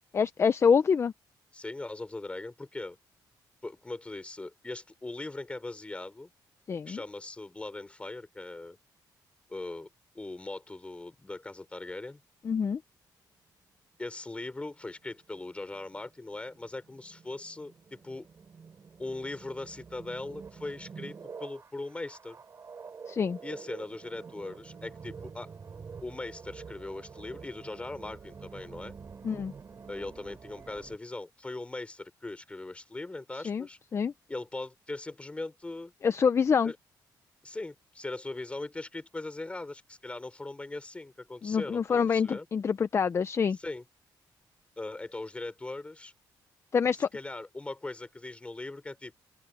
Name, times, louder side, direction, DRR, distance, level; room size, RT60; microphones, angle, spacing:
voice 1, 0.1-1.1 6.7-7.0 12.4-12.8 23.1-23.4 29.2-29.5 33.4-33.6 33.9-34.1 36.0-36.7 41.4-43.6 46.7-47.1, left 6 dB, 35° left, 0.6 m, -26 dB
voice 2, 1.5-3.0 3.6-6.3 6.9-8.8 9.5-9.9 10.1-12.2 14.0-18.3 19.0-22.4 23.4-25.5 26.0-28.9 29.9-33.8 34.3-35.9 36.6-36.8 37.4-42.5 43.5-43.8 44.8-46.1 46.9-49.2, left 2 dB, 15° left, 3.9 m, -40 dB
sound 1, 14.6-31.0, right 5 dB, 40° right, 5.1 m, -47 dB
open air
cardioid pair, 115°, 8 cm